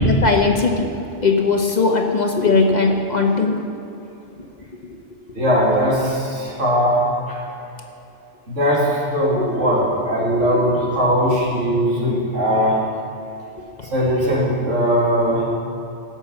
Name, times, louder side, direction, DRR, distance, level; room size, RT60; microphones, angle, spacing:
voice 1, 0.0-0.9 1.2-3.6 9.3-9.7 10.3-11.0 11.3-11.9, left 4 dB, 40° left, 2 dB, 1.1 m, -20 dB
voice 2, 5.3-7.0 8.5-12.8 13.9-15.4, equal, 85° right, -5 dB, 3.2 m, -19 dB
17.0 x 6.2 x 7.2 m, 2.7 s
omnidirectional pair, 1.2 m